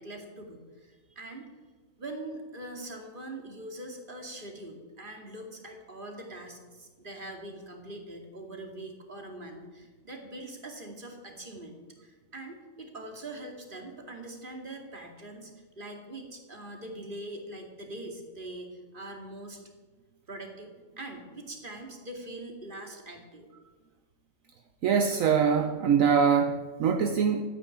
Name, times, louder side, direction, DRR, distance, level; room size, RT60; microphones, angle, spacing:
voice 1, 0.0-1.5 2.0-19.6 20.3-23.5, right 1 dB, 35° right, 3 dB, 2.6 m, -43 dB
voice 2, 24.8-27.5, right 6 dB, 70° right, 5 dB, 1.2 m, -23 dB
14.0 x 9.4 x 9.2 m, 1.4 s
omnidirectional pair, 1.5 m